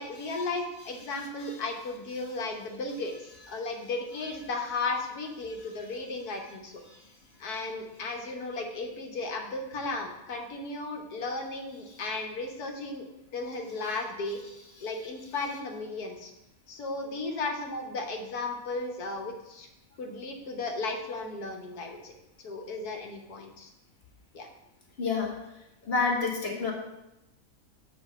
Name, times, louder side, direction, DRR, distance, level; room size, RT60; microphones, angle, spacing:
voice 1, 0.0-6.8 7.4-13.0 13.3-14.4 14.8-16.3 16.7-19.7 20.0-22.1 22.4-23.7 24.3-24.5, left 3 dB, 85° left, 2 dB, 1.6 m, -35 dB
voice 2, 25.0-25.3 25.8-26.7, left 4 dB, 45° left, 0 dB, 1.5 m, -27 dB
5.7 x 5.4 x 6.7 m, 0.92 s
omnidirectional pair, 1.6 m